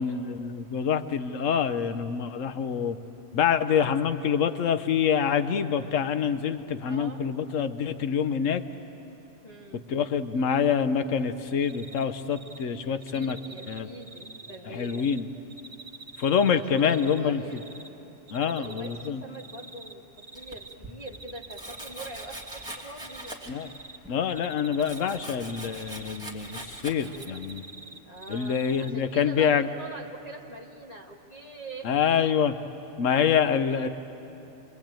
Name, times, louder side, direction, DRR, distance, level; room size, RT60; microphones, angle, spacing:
voice 1, 0.0-3.0 3.3-8.6 9.9-13.4 13.7-13.9 14.7-15.3 16.2-17.6 18.3-19.2 23.5-23.7 24.1-27.6 28.3-29.7 31.8-32.5 33.0-33.9, left 7 dB, 80° left, 10 dB, 1.2 m, -26 dB
voice 2, 6.9-7.3 9.4-9.8 12.8-15.2 16.5-17.6 18.4-20.0 20.3-23.3 27.1-27.4 28.1-31.9 33.3-33.8, right 2 dB, 30° left, -1 dB, 1.9 m, -43 dB
Cricket, 11.6-12.0 12.3-12.6 13.0-15.2 15.5-17.2 17.5-17.9 18.3-19.1 19.3-20.7 21.0-23.3 23.6-24.0 24.3-26.8 27.1-28.9, right 3 dB, 90° right, 1.4 m, -45 dB
Domestic sounds home sounds, 20.3-20.9 21.5-23.7 24.0-27.6, right 1 dB, 5° right, 2.5 m, -42 dB
29.0 x 22.0 x 8.9 m, 3.0 s
omnidirectional pair, 1.3 m